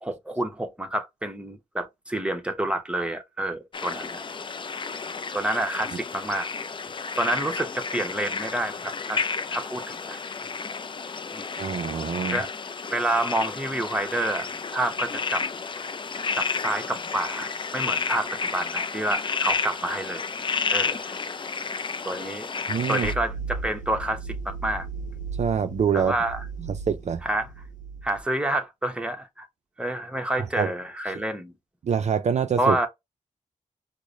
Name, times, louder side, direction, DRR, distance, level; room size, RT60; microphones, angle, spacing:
voice 1, 0.0-4.2 5.3-6.5 7.2-9.2 9.5-10.2 11.3-11.4 12.3-12.5 12.9-14.5 14.7-15.5 16.3-20.3 20.7-21.1 22.0-22.5 22.9-24.9 25.9-26.4 27.2-27.5 28.0-29.5 29.8-31.5 32.6-32.9, right 1 dB, 10° right, 0.9 m, -28 dB
sound 1, 3.7-23.1, left 5 dB, 35° left, 0.4 m, -31 dB
voice 2, 11.6-12.4 22.7-23.1 25.4-26.1 26.6-27.2 30.6-30.7 31.8-32.8, right 7 dB, 55° right, 0.4 m, -25 dB
sound 2, 23.0-28.2, right 3 dB, 65° left, 0.9 m, -36 dB
4.7 x 2.1 x 2.6 m
cardioid pair, 70°, 14 cm